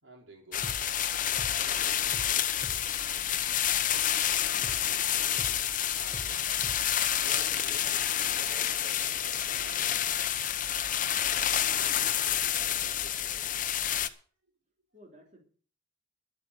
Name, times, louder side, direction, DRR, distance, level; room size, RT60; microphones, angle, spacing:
voice 1, 0.0-0.7 1.6-2.2 5.9-6.7 7.2-10.2 11.2-12.5 12.8-13.6, right 1 dB, 80° right, 2 dB, 4.4 m, -52 dB
sound 1, 0.5-14.1, left 10 dB, 45° left, 0.9 m, -29 dB
sound 2, 0.6-0.9 1.1-1.6 2.1-2.4 2.6-2.9 4.6-4.9 5.1-5.6 6.1-6.4 6.6-6.9 7.1-7.2, equal, 25° right, 2.3 m, -42 dB
voice 2, 2.9-4.7 14.9-15.4, equal, 40° right, 0 dB, 3.4 m, -56 dB
12.0 x 8.7 x 8.0 m, 0.43 s
head